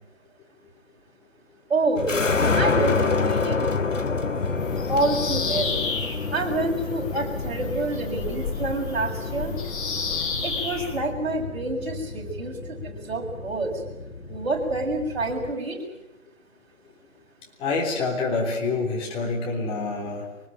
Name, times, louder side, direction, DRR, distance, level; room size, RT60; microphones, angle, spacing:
voice 1, 1.7-2.1 2.6-3.7 4.9-5.8 6.3-9.6 10.4-13.8 14.3-15.8, right 2 dB, 50° right, 0 dB, 6.9 m, -27 dB
sound 1, 2.0-15.5, left 4 dB, 70° left, 2.5 m, -28 dB
Bird vocalization bird call bird song, 4.6-11.0, left 5 dB, 40° left, 6.2 m, -32 dB
voice 2, 17.6-20.3, left 3 dB, 15° left, 0 dB, 3.4 m, -27 dB
24.5 x 20.0 x 9.1 m, 0.96 s
figure-of-eight pair, 140°, 39 cm